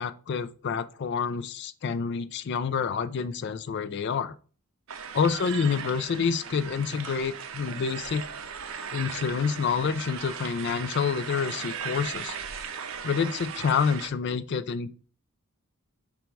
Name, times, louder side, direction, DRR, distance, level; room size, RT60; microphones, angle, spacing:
voice 1, 0.0-4.3 5.1-8.2 8.9-12.4 13.0-14.9, left 6 dB, 50° left, 14 dB, 0.3 m, -28 dB
sound 1, 4.9-14.1, right 7 dB, 65° right, 0.5 m, -37 dB
5.2 x 2.3 x 4.4 m, 0.40 s
head